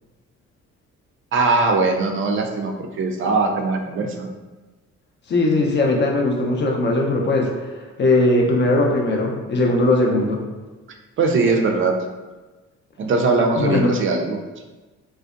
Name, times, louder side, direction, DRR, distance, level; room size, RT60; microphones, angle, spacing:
voice 1, 1.3-4.3 11.2-11.9 13.0-14.4, right 3 dB, 45° right, 2 dB, 0.4 m, -20 dB
voice 2, 5.3-10.4 13.6-13.9, left 2 dB, 35° left, 0 dB, 0.5 m, -19 dB
2.5 x 2.1 x 2.4 m, 1.2 s
cardioid pair, 90°, 30 cm